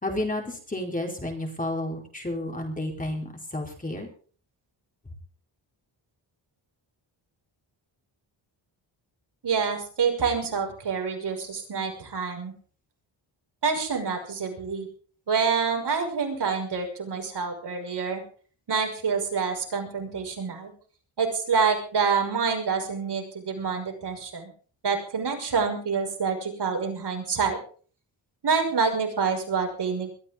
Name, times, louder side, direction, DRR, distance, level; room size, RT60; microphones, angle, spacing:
voice 1, 0.0-4.1, left 1 dB, 15° left, 1 dB, 4.3 m, -31 dB
voice 2, 9.4-12.5 13.6-14.9 15.3-18.2 18.7-20.7 21.2-24.5 24.8-27.6 28.4-30.1, right 5 dB, 60° right, 2 dB, 5.9 m, -27 dB
22.5 x 14.5 x 3.8 m, 0.43 s
wide cardioid pair, 180°, 46 cm